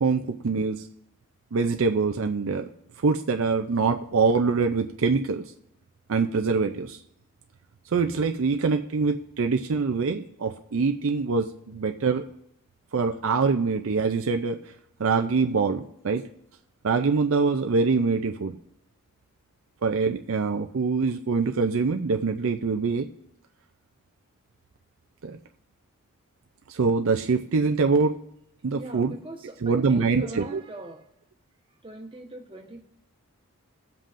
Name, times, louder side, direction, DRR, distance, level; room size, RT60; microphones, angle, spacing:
voice 1, 0.0-0.8 1.5-2.7 3.0-5.4 6.1-7.0 7.9-12.3 12.9-14.6 15.0-16.2 16.8-18.6 19.8-23.1 25.2-25.4 26.7-28.2 28.6-29.2 29.6-30.6, right 4 dB, 65° right, 6 dB, 0.5 m, -24 dB
voice 2, 28.7-31.0 31.8-32.8, right 2 dB, 25° right, 1 dB, 1.1 m, -41 dB
18.5 x 7.5 x 2.5 m, 0.73 s
head